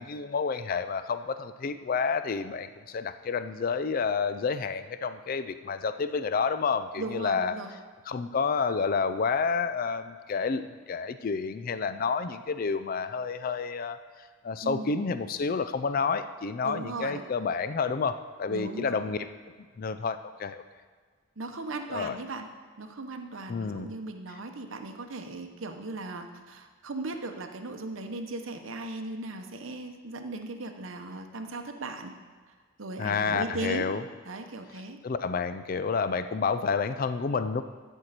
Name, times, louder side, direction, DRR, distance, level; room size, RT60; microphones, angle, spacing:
voice 1, 0.0-7.5 8.1-14.0 14.4-19.3 19.8-20.6 21.9-22.2 23.5-23.9 33.0-34.0 35.0-37.6, left 5 dB, 40° left, 11 dB, 0.3 m, -29 dB
voice 2, 7.0-7.7 14.6-15.2 16.6-17.3 18.5-19.1 21.4-22.5 22.8-32.1 32.8-33.9 34.3-35.0, right 2 dB, 65° right, 6 dB, 0.8 m, -37 dB
12.5 x 4.5 x 6.6 m, 1.5 s
head